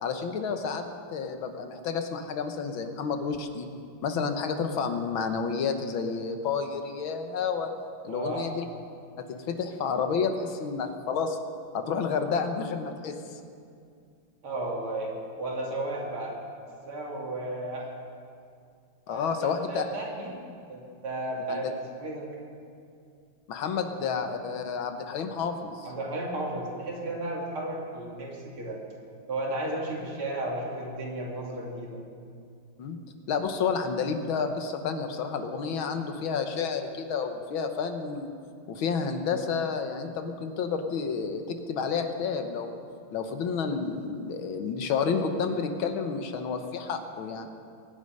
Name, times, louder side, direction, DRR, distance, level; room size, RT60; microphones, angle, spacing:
voice 1, 0.0-3.7 4.0-7.7 8.0-8.6 9.5-11.4 11.7-13.4 19.1-19.8 21.5-21.7 23.5-25.9 32.8-33.0 33.3-38.3 38.7-42.8 43.1-47.5, left 5 dB, 75° left, 6 dB, 1.8 m, -30 dB
voice 2, 8.1-8.4 14.4-16.4 16.9-17.9 19.1-20.4 20.7-21.7 22.0-22.3 25.8-28.8 29.3-32.0, right 1 dB, 85° right, -3 dB, 3.7 m, -34 dB
22.5 x 10.0 x 5.4 m, 2.4 s
omnidirectional pair, 2.3 m